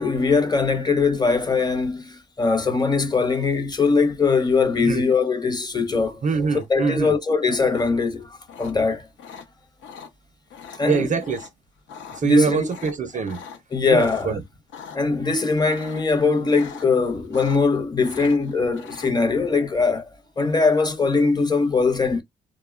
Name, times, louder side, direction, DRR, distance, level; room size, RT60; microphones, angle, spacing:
voice 1, 0.0-6.2 6.7-9.1 10.7-11.1 12.2-12.7 13.1-13.2 13.7-14.4 14.9-20.0 20.4-22.2, left 4 dB, 20° left, 0.7 m, -21 dB
voice 2, 6.2-7.2 10.8-11.5 12.1-13.4 13.9-14.4, right 5 dB, 40° right, 0.5 m, -23 dB
sound 1, 6.3-6.9 7.7-7.9 8.5-8.7 9.2-9.5 9.8-10.1 10.5-10.8 11.2-11.5 11.8-12.2 12.6-14.3 14.7-15.0 15.6-16.1 16.5-16.9 17.1-17.8 18.0-19.1, left 7 dB, 75° left, 0.7 m, -41 dB
2.8 x 2.1 x 2.3 m
cardioid pair, 90°, 20 cm